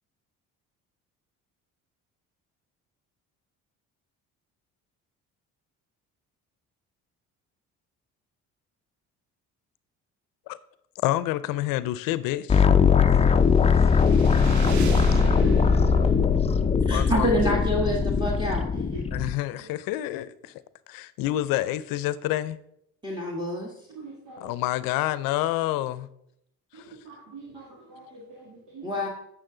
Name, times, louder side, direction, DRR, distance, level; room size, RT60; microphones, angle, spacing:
voice 1, 11.0-12.7 16.9-17.6 19.1-20.5 20.9-22.6 24.4-26.1 26.7-26.9, left 15 dB, 85° left, 17 dB, 0.5 m, -28 dB
sound 1, 12.5-19.3, left 6 dB, 20° left, 0.4 m, -20 dB
sound 2, 13.0-18.4, right 4 dB, 55° right, 1.1 m, -35 dB
voice 2, 15.8-16.2 16.6-16.9 17.4-17.5 18.7-19.0 19.6-19.7 23.9-24.5 26.7-29.0, right 2 dB, 75° right, -5 dB, 2.3 m, -44 dB
voice 3, 16.9-18.6 23.0-23.7 28.8-29.1, equal, 15° right, -2 dB, 1.5 m, -27 dB
8.8 x 6.3 x 3.8 m, 0.75 s
cardioid pair, 90°, 34 cm